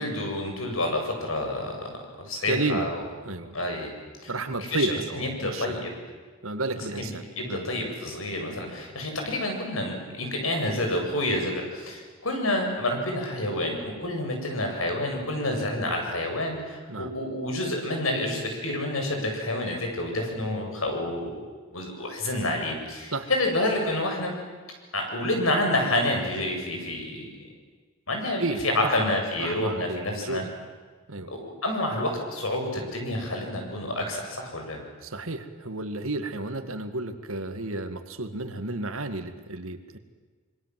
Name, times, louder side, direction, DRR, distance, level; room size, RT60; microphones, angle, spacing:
voice 1, 0.0-3.0 3.5-3.9 4.2-4.3 4.7-5.9 6.9-7.1 7.4-21.4 21.7-24.3 24.9-27.3 28.1-30.4 31.3-34.8, left 1 dB, 80° left, 2 dB, 7.7 m, -28 dB
voice 2, 2.5-2.9 3.2-3.6 4.3-5.9 6.4-7.7 16.9-17.1 23.1-23.3 28.4-30.5 31.1-31.3 35.0-40.0, right 2 dB, 85° right, 8 dB, 2.3 m, -32 dB
26.5 x 24.5 x 7.8 m, 1.5 s
head